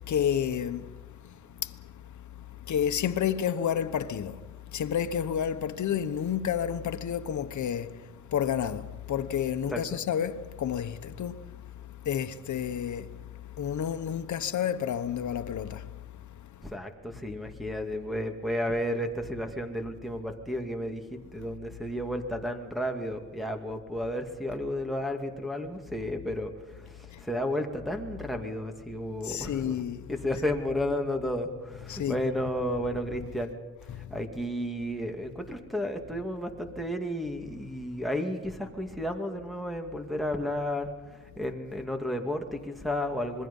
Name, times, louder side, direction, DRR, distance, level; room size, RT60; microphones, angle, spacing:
voice 1, 0.1-0.8 2.7-4.4 4.7-7.9 8.3-11.4 12.1-13.1 13.6-15.8 29.3-30.0 31.9-32.2, left 9 dB, 75° left, 1.1 m, -30 dB
voice 2, 16.6-21.0 21.3-29.8 30.1-33.5 34.0-40.9 41.4-43.5, left 1 dB, ahead, 2.3 m, -32 dB
26.5 x 21.5 x 5.5 m
wide cardioid pair, 125°, 30 cm